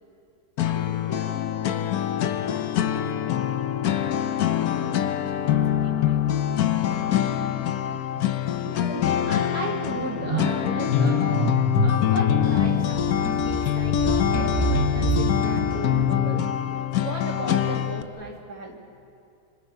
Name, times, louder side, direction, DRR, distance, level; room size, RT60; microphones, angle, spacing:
sound 1, 0.6-18.0, left 10 dB, 70° left, 1.2 m, -24 dB
voice 1, 0.6-3.4 3.9-6.3, left 1 dB, 50° left, -3 dB, 3.9 m, -44 dB
sound 2, 7.2-7.5 7.8-16.6, equal, 20° right, 2.8 m, -28 dB
voice 2, 9.2-16.5 17.0-18.8, right 2 dB, 65° right, 0 dB, 3.1 m, -35 dB
27.0 x 26.0 x 5.5 m, 2.6 s
omnidirectional pair, 1.7 m